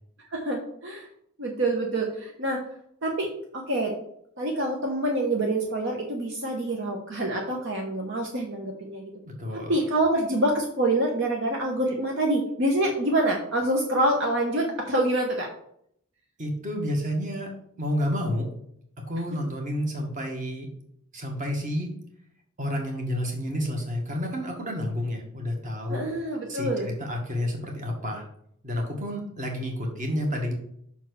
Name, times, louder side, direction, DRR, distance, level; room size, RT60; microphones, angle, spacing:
voice 1, 0.3-1.1 1.4-2.6 3.0-3.9 4.4-9.1 9.5-15.5 25.9-26.9, right 1 dB, 55° right, 0 dB, 1.1 m, -26 dB
voice 2, 9.2-9.7 16.4-17.5 17.8-18.5 19.1-20.7 21.1-21.9 22.6-26.0 26.5-28.2 28.6-30.5, equal, 35° right, 1 dB, 1.7 m, -30 dB
5.7 x 4.6 x 6.3 m, 0.70 s
head